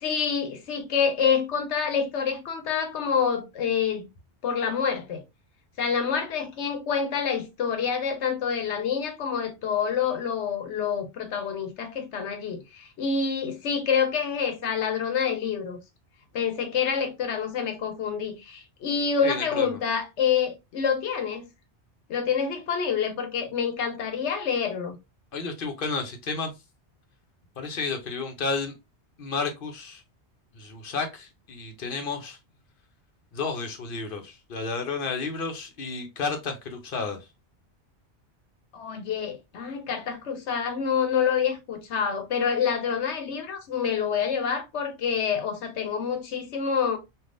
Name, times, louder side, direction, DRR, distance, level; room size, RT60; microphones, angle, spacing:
voice 1, 0.0-4.0 4.4-5.2 5.8-15.8 16.3-21.4 22.1-25.0 38.7-47.0, left 6 dB, 80° left, 1.1 m, -27 dB
voice 2, 19.2-19.8 25.3-26.5 27.6-28.7 29.2-30.0 30.5-32.4 33.3-37.2, left 4 dB, 55° left, 0.8 m, -31 dB
3.3 x 2.5 x 2.5 m
omnidirectional pair, 1.1 m